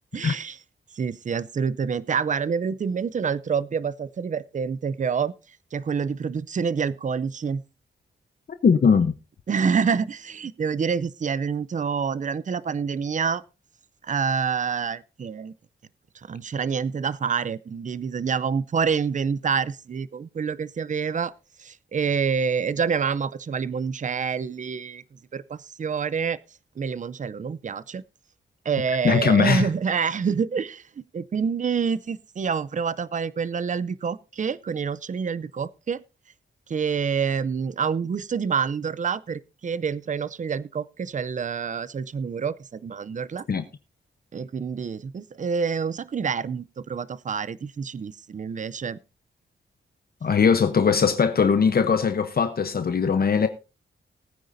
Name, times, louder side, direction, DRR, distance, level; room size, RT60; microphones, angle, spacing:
voice 1, 0.1-0.6 1.0-5.3 5.7-7.6 9.5-13.4 14.0-15.5 16.3-21.3 21.6-25.0 25.3-26.4 26.8-28.0 28.7-36.0 36.7-43.4 44.3-49.0, right 6 dB, 40° right, 0.5 m, -27 dB
voice 2, 8.6-9.1 29.0-29.7 43.5-43.7 50.2-53.5, left 6 dB, 50° left, 0.9 m, -20 dB
19.5 x 9.2 x 2.6 m
wide cardioid pair, 95°, 20 cm